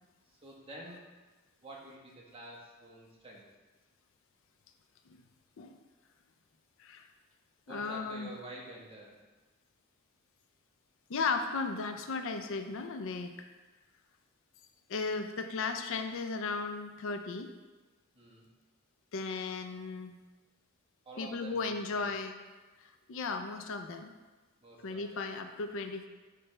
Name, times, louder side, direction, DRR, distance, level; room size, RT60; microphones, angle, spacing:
voice 1, 0.3-1.1 1.6-3.4 7.7-9.2 18.1-18.5 21.0-22.1 24.6-25.3, right 1 dB, 25° right, -3 dB, 1.2 m, -49 dB
voice 2, 7.7-8.3 11.1-13.3 14.9-17.5 19.1-20.1 21.2-22.3 22.8-24.1 24.8-26.1, left 4 dB, 65° left, 7 dB, 0.4 m, -35 dB
9.8 x 3.3 x 3.3 m, 1.2 s
head